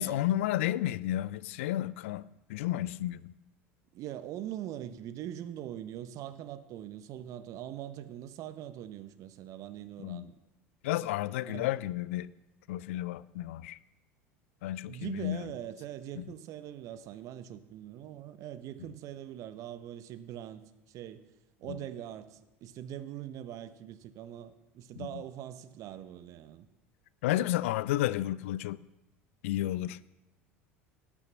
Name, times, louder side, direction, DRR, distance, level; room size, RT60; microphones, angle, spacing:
voice 1, 0.0-3.3 10.0-10.2 10.8-12.3 12.7-13.8 14.6-15.4 16.2-16.3 21.7-21.8 25.0-25.1 27.2-28.8 29.4-30.0, left 14 dB, 65° left, 0.4 m, -32 dB
voice 2, 3.9-10.3 11.5-11.7 14.9-21.3 21.6-26.7, right 11 dB, 50° right, 0.8 m, -42 dB
12.0 x 6.0 x 8.0 m
figure-of-eight pair, 70°, 7 cm